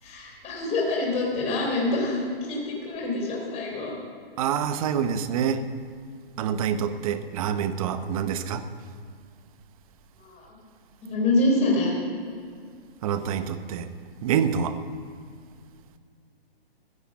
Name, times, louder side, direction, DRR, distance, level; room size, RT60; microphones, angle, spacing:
voice 1, 0.0-3.9 10.2-10.5 11.0-11.9, left 2 dB, 20° left, -2 dB, 3.6 m, -26 dB
voice 2, 4.4-5.6 6.4-8.6 13.0-13.9 14.2-14.8, right 8 dB, 35° right, 11 dB, 0.8 m, -26 dB
14.5 x 8.3 x 7.5 m, 2.1 s
hypercardioid pair, 145°, 31 cm